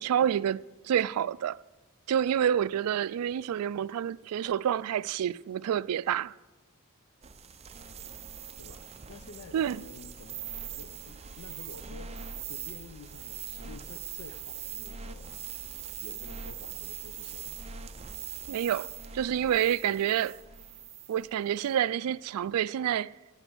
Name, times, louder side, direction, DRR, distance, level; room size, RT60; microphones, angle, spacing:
voice 1, 0.0-1.6 2.1-6.3 9.5-9.8 18.5-18.9 19.1-20.3 21.1-23.1, right 9 dB, 80° right, 0.3 m, -28 dB
sound 1, 7.2-21.3, right 8 dB, 30° right, 0.5 m, -42 dB
voice 2, 8.6-10.4 10.7-15.4 15.9-17.6 19.8-20.1, left 3 dB, 85° left, 0.7 m, -50 dB
9.0 x 7.5 x 7.9 m
head